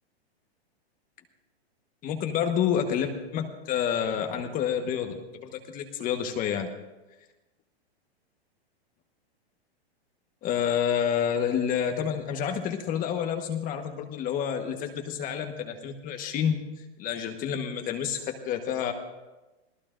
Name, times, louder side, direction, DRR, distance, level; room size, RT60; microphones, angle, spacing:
voice 1, 2.0-6.7 10.4-16.6 17.0-18.9, left 8 dB, 25° left, 5 dB, 1.2 m, -29 dB
26.5 x 18.0 x 2.5 m, 1.1 s
hypercardioid pair, 140°, 32 cm